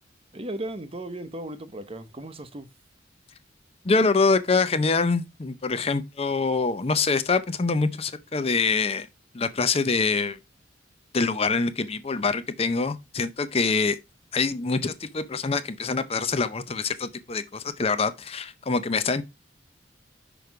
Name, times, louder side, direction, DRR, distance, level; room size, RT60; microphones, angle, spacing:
voice 1, 0.3-2.7, right 1 dB, 30° right, 0.9 m, -36 dB
voice 2, 3.8-9.1 9.3-10.4 11.1-14.0 14.3-19.2, left 4 dB, 30° left, 0.6 m, -25 dB
6.2 x 5.1 x 4.7 m
head